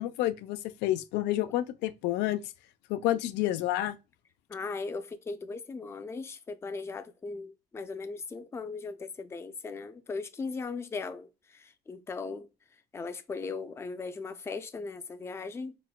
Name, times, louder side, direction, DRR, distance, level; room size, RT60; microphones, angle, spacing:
voice 1, 0.0-2.4 2.9-4.0, left 14 dB, 90° left, 0.4 m, -29 dB
voice 2, 4.5-12.5 12.9-15.8, left 4 dB, 15° left, 0.3 m, -38 dB
4.1 x 2.1 x 2.3 m
cardioid pair, 110°, 17 cm